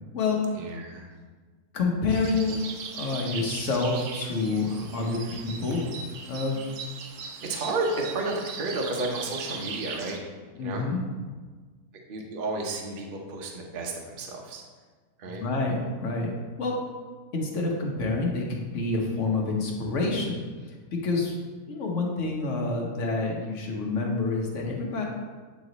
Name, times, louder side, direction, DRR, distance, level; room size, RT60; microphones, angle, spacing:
voice 1, 0.5-1.1 5.2-5.4 7.4-10.2 10.6-10.8 12.1-14.6 15.2-15.4, right 2 dB, 45° right, 1 dB, 0.8 m, -32 dB
voice 2, 1.7-2.6 2.9-5.8 6.3-6.6 10.5-11.0 15.2-16.8 17.3-25.0, left 3 dB, 60° left, 0 dB, 1.3 m, -28 dB
sound 1, 2.1-10.2, right 5 dB, 80° right, 1.2 m, -39 dB
8.3 x 3.1 x 3.9 m, 1.4 s
omnidirectional pair, 1.5 m